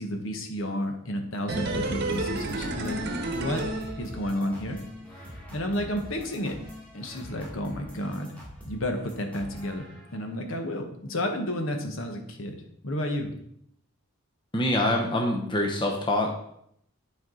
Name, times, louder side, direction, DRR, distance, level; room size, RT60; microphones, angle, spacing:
voice 1, 0.0-3.0 3.3-3.6 4.0-4.8 5.1-6.6 6.9-8.3 8.6-12.6 12.8-13.3, left 1 dB, 65° left, 4 dB, 1.2 m, -31 dB
sound 1, 1.5-4.6 4.9-5.0, right 2 dB, 50° right, 1.0 m, -31 dB
sound 2, 2.1-10.3, equal, 5° left, 1.9 m, -45 dB
voice 2, 14.5-16.3, left 1 dB, 20° left, 1 dB, 0.9 m, -25 dB
10.5 x 4.7 x 3.9 m, 0.71 s
head